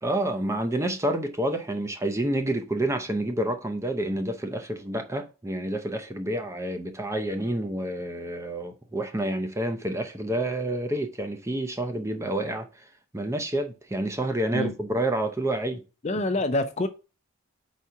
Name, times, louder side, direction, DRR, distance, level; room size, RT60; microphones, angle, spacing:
voice 1, 0.0-12.7 13.1-15.8, right 1 dB, 15° right, 0.6 m, -28 dB
voice 2, 16.0-16.9, left 2 dB, 30° left, 0.5 m, -26 dB
4.9 x 4.2 x 4.6 m
head